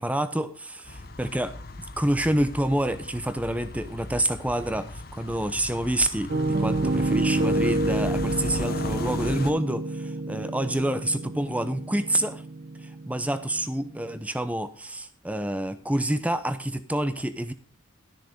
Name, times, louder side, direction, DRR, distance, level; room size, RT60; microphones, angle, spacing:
voice 1, 0.0-12.4 12.8-17.5, right 1 dB, 5° right, 12 dB, 0.7 m, -28 dB
sound 1, 0.8-9.5, left 2 dB, 45° left, 1.0 m, -38 dB
Piano, 6.3-14.2, right 2 dB, 45° right, 0.4 m, -28 dB
13.0 x 6.6 x 5.1 m, 0.43 s
head